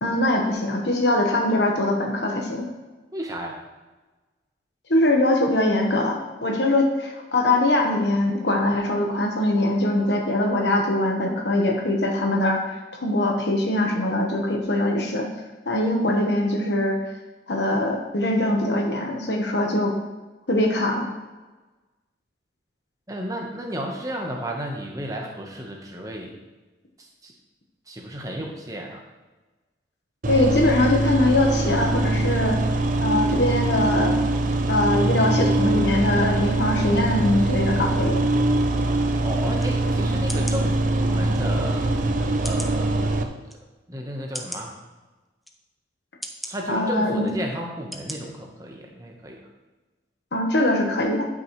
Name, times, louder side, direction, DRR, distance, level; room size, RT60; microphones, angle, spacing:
voice 1, 0.0-2.7 4.9-15.3 15.7-17.0 17.5-19.9 20.5-21.1 30.3-32.6 33.0-34.2 34.7-38.2 46.7-47.3 50.3-51.3, left 1 dB, 70° left, 1 dB, 1.2 m, -22 dB
voice 2, 3.1-3.6 23.1-26.3 27.0-27.3 27.9-29.0 39.2-41.9 42.4-43.1 43.9-44.7 46.4-49.4, equal, 20° right, 1 dB, 1.1 m, -33 dB
sound 1, 30.2-43.2, right 2 dB, 45° right, 0.6 m, -23 dB
sound 2, 39.6-39.7 40.3-40.6 41.3-41.4 42.4-42.8 43.5-43.6 44.3-44.6 45.4-45.6 46.2-46.5 47.2-47.4 47.9-48.2 48.6-48.7, equal, ahead, 0.5 m, -35 dB
12.5 x 6.2 x 3.2 m, 1.2 s
head